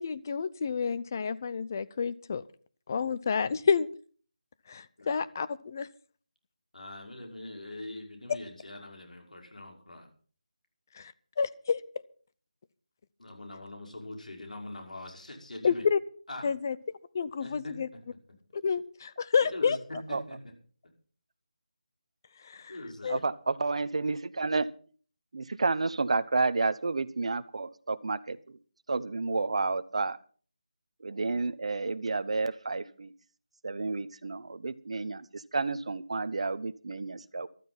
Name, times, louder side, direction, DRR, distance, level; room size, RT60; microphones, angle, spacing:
voice 1, 0.0-2.4 2.9-3.9 4.7-5.9 8.3-8.4 11.0-11.8 15.6-16.0 16.4-16.8 17.2-17.9 18.5-19.8 22.5-22.6 23.0-23.2, left 6 dB, 25° left, 16 dB, 0.5 m, -29 dB
voice 2, 6.7-10.1 13.2-15.8 16.3-16.5 17.4-17.7 19.3-20.4 22.7-23.2, left 2 dB, 85° left, 2 dB, 5.5 m, -43 dB
voice 3, 23.1-24.7 25.3-28.6 28.9-30.2 31.0-33.1 33.6-37.5, right 3 dB, 55° right, 13 dB, 0.9 m, -31 dB
13.5 x 12.5 x 5.7 m, 0.44 s
figure-of-eight pair, 170°, 4 cm